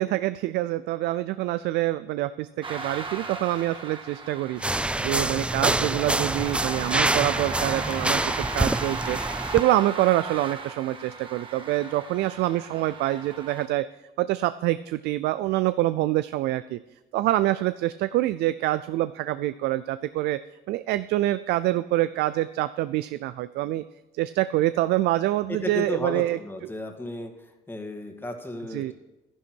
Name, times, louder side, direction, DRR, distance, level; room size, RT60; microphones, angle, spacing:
voice 1, 0.0-4.6 5.0-9.2 9.5-13.8 14.2-16.8 17.1-20.4 20.7-23.8 24.2-26.4 28.7-28.9, right 15 dB, 80° right, 14 dB, 0.4 m, -26 dB
sound 1, 2.6-13.7, right 4 dB, 30° right, 1.6 m, -37 dB
sound 2, 4.6-9.6, right 2 dB, 5° right, 0.4 m, -26 dB
voice 2, 25.5-27.3 27.7-28.9, left 2 dB, 15° left, 3 dB, 2.0 m, -34 dB
11.5 x 11.0 x 4.5 m, 1.0 s
cardioid pair, 110°, 17 cm